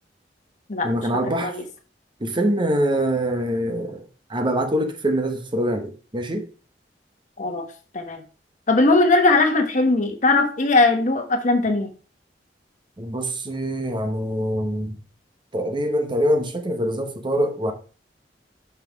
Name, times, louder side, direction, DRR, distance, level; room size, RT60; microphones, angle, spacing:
voice 1, 0.8-1.6 2.2-4.0 4.3-6.5 13.0-15.0 15.5-17.7, equal, 30° right, 1.0 m, -24 dB
voice 2, 8.7-11.9, left 2 dB, 45° left, 1.1 m, -19 dB
5.9 x 5.7 x 4.5 m
head